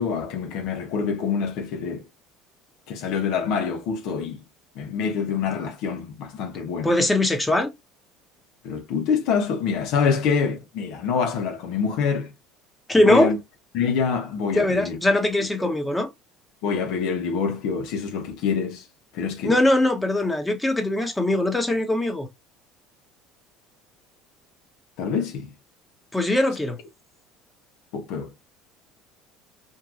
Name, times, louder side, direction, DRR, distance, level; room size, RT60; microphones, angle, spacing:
voice 1, 0.0-2.0 2.9-4.4 4.7-6.9 8.6-12.3 13.0-13.4 13.7-15.0 15.6-15.7 16.6-18.8 19.1-19.5 25.0-25.5 27.9-28.3, left 6 dB, 65° left, 1.1 m, -26 dB
voice 2, 6.8-7.7 12.9-13.3 14.5-16.1 19.4-22.3 26.1-26.8, left 1 dB, 10° left, 1.2 m, -21 dB
4.5 x 2.8 x 2.6 m
hypercardioid pair, 65°, 0 cm